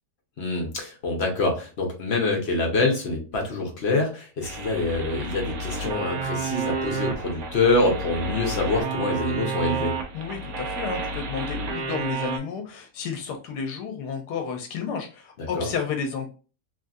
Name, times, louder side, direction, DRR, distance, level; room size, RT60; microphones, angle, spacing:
voice 1, 0.4-9.9 15.4-15.7, left 2 dB, 50° left, 1 dB, 1.0 m, -25 dB
sound 1, 4.4-12.4, right 4 dB, 70° right, 1.1 m, -31 dB
voice 2, 10.1-16.3, left 6 dB, 85° left, 4 dB, 1.2 m, -31 dB
3.3 x 2.6 x 2.3 m, 0.35 s
omnidirectional pair, 1.7 m